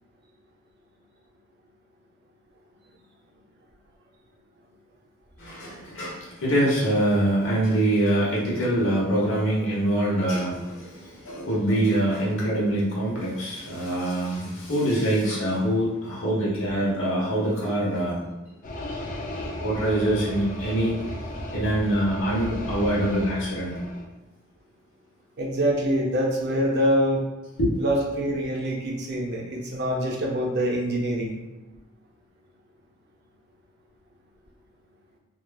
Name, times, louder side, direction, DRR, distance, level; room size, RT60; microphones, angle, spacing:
voice 1, 5.4-18.3 19.6-21.0 21.5-23.7 27.6-27.7, right 1 dB, 75° left, -5 dB, 1.0 m, -24 dB
sound 1, 18.6-24.0, left 1 dB, 40° left, 0.4 m, -34 dB
voice 2, 25.4-27.2 27.8-31.4, equal, 55° right, -1 dB, 0.5 m, -25 dB
2.9 x 2.3 x 2.2 m, 1.0 s
head